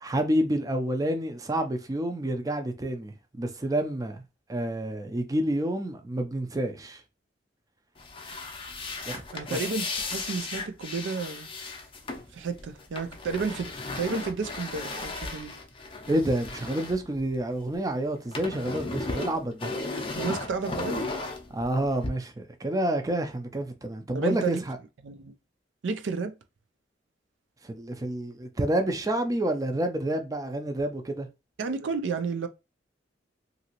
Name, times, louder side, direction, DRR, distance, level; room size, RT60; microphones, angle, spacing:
voice 1, 0.0-4.2 4.5-7.0 9.1-9.2 9.5-9.6 16.1-19.7 21.5-24.8 27.6-31.3, right 1 dB, 20° right, 0.4 m, -29 dB
sound 1, 8.0-17.8 18.0-22.1, left 3 dB, 30° left, 0.5 m, -36 dB
voice 2, 9.3-11.5 12.3-15.6 20.1-21.0 24.1-24.6 25.0-25.3 25.8-26.3 31.6-32.5, right 4 dB, 80° right, 0.4 m, -31 dB
2.9 x 2.6 x 2.8 m
head